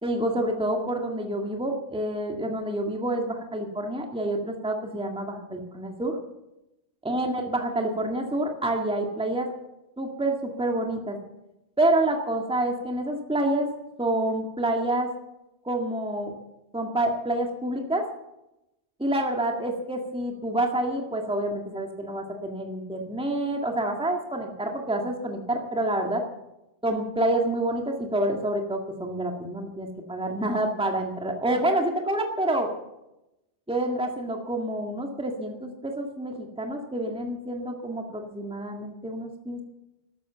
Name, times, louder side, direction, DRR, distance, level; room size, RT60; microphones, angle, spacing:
voice 1, 0.0-6.2 7.0-9.5 10.0-11.2 11.8-13.7 14.0-15.1 15.7-16.3 16.7-18.1 19.0-26.2 26.8-32.7 33.7-39.6, right 1 dB, 5° right, 2 dB, 1.8 m, -28 dB
13.5 x 12.5 x 7.3 m, 0.91 s
omnidirectional pair, 1.2 m